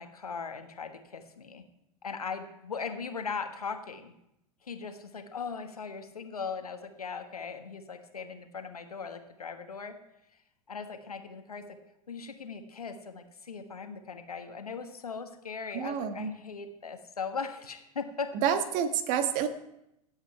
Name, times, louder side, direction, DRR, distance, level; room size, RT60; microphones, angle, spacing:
voice 1, 0.0-1.6 2.0-4.1 4.6-9.9 10.7-11.8 12.1-18.3, left 5 dB, 80° left, 7 dB, 1.4 m, -39 dB
voice 2, 15.7-16.3 18.4-19.5, right 8 dB, 45° right, 9 dB, 1.3 m, -28 dB
17.0 x 8.2 x 4.7 m, 0.83 s
figure-of-eight pair, 95°, 19 cm